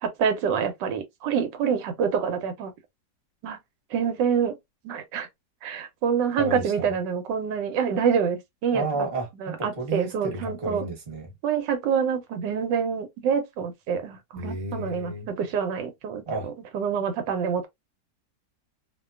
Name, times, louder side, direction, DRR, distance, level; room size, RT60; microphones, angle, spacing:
voice 1, 0.0-2.7 3.4-3.6 3.9-4.6 4.8-5.3 5.6-9.1 9.4-10.9 11.4-17.7, right 7 dB, 85° right, 1.3 m, -26 dB
voice 2, 6.4-6.9 8.7-11.3 14.3-15.3 16.3-16.5, right 2 dB, 40° right, 1.2 m, -32 dB
2.8 x 2.2 x 2.3 m
omnidirectional pair, 1.9 m